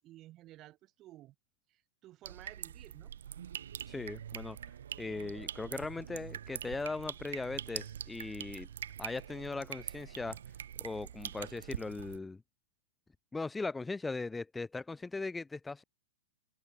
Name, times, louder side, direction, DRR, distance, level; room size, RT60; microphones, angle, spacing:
voice 1, 0.0-1.3 1.7-3.1, right 15 dB, 30° right, 4.9 m, -55 dB
sound 1, 2.2-12.2, right 9 dB, 85° right, 0.5 m, -44 dB
voice 2, 3.9-4.6 5.0-8.7 9.0-10.4 10.8-12.4 13.3-15.8, left 3 dB, 10° left, 1.3 m, -39 dB
hypercardioid pair, 145°, 0 cm